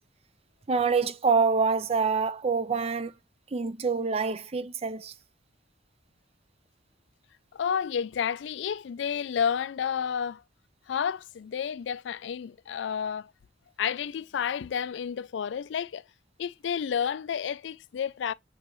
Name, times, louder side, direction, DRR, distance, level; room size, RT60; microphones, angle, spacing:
voice 1, 0.7-3.1 3.5-5.1, right 5 dB, 35° right, 0.5 m, -26 dB
voice 2, 7.5-10.4 10.9-13.3 13.8-16.0 16.4-18.3, left 7 dB, 80° left, 0.4 m, -30 dB
7.5 x 5.0 x 3.0 m
head